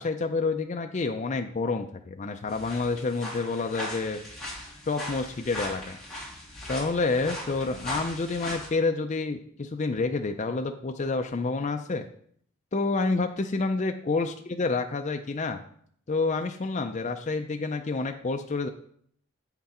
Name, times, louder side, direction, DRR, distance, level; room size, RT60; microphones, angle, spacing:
voice 1, 0.0-4.2 4.9-6.0 6.7-12.1 12.7-15.6 16.1-18.7, left 3 dB, 35° left, 5 dB, 0.4 m, -28 dB
sound 1, 2.5-8.7, left 1 dB, ahead, 2.4 m, -38 dB
7.8 x 5.9 x 4.2 m, 0.62 s
head